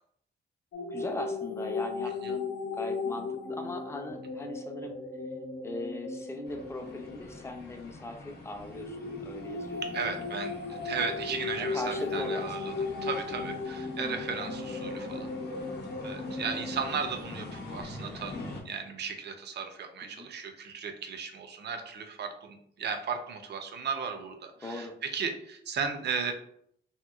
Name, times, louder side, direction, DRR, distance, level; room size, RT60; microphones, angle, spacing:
sound 1, 0.7-7.8 8.7-17.2, left 4 dB, 90° left, 0.7 m, -36 dB
voice 1, 0.9-5.0 5.6-10.2 11.6-13.1 16.5-16.7 20.0-20.3 24.6-25.0, left 1 dB, 15° left, 4 dB, 0.4 m, -40 dB
sound 2, 6.4-18.6, left 2 dB, 55° left, 0.7 m, -44 dB
voice 2, 9.8-12.7 13.0-15.3 15.5-18.4 18.6-26.3, right 6 dB, 55° right, 6 dB, 0.5 m, -36 dB
2.9 x 2.8 x 2.3 m, 0.68 s
wide cardioid pair, 120°, 20 cm